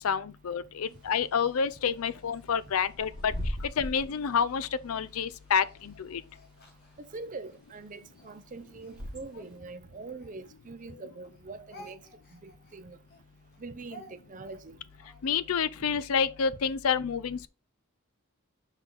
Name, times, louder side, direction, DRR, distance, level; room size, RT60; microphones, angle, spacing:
voice 1, 0.0-3.3 3.8-6.2 15.2-17.5, left 6 dB, 80° left, 0.5 m, -28 dB
Bird / Wind, 0.9-9.6, equal, 5° right, 2.9 m, -42 dB
Speech, 4.5-7.6 8.1-11.0 11.2-15.6, equal, 50° left, 1.9 m, -55 dB
voice 2, 7.0-12.0 12.3-13.0 13.6-14.8, right 3 dB, 35° right, 0.5 m, -43 dB
5.7 x 4.5 x 3.8 m
head